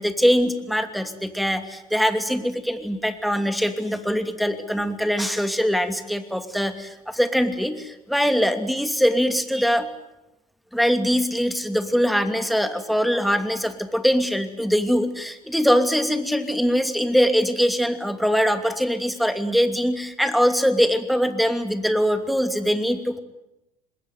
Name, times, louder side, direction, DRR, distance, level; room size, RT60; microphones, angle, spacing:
voice 1, 0.0-9.9 10.7-23.2, equal, ahead, 8 dB, 2.8 m, -22 dB
26.0 x 20.5 x 9.4 m, 0.91 s
hypercardioid pair, 70°, 19 cm